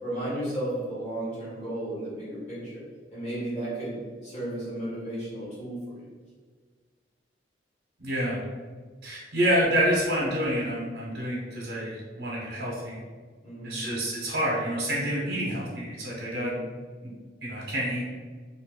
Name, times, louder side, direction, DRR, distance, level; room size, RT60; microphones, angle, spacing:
voice 1, 0.0-2.8 3.1-4.0 4.2-5.9 13.4-13.8 16.2-16.6, right 1 dB, 35° left, -9 dB, 1.5 m, -34 dB
voice 2, 8.0-8.4 9.0-13.0 13.6-16.5 17.0-17.1 17.4-18.0, equal, 70° right, -5 dB, 0.8 m, -28 dB
2.6 x 2.6 x 3.7 m, 1.5 s
head